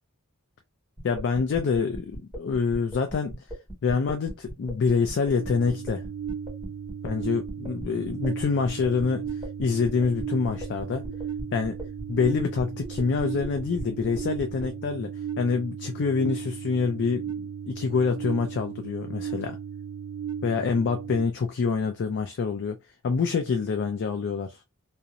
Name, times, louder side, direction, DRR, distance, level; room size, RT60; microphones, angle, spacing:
voice 1, 1.0-3.4 3.8-6.0 7.0-11.1 11.5-11.8 12.1-19.6 20.4-22.8 23.0-24.6, left 5 dB, 55° left, 0.4 m, -26 dB
sound 1, 1.0-14.7, equal, 10° right, 1.4 m, -38 dB
sound 2, 5.4-21.2, right 7 dB, 90° right, 0.4 m, -36 dB
2.8 x 2.0 x 2.4 m
head